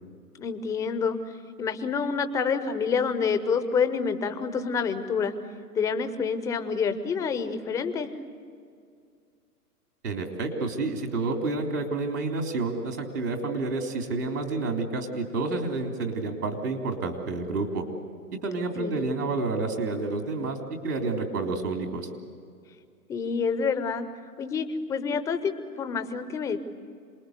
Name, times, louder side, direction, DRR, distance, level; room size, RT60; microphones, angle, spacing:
voice 1, 0.4-1.2 1.6-5.3 5.8-8.1 18.8-18.9 23.1-24.1 24.4-26.6, left 5 dB, 5° left, 10 dB, 0.5 m, -27 dB
voice 2, 10.0-17.8 18.4-20.6 20.8-22.1, right 3 dB, 75° right, 3 dB, 3.7 m, -29 dB
27.0 x 20.5 x 8.1 m, 2.3 s
figure-of-eight pair, 120°, 46 cm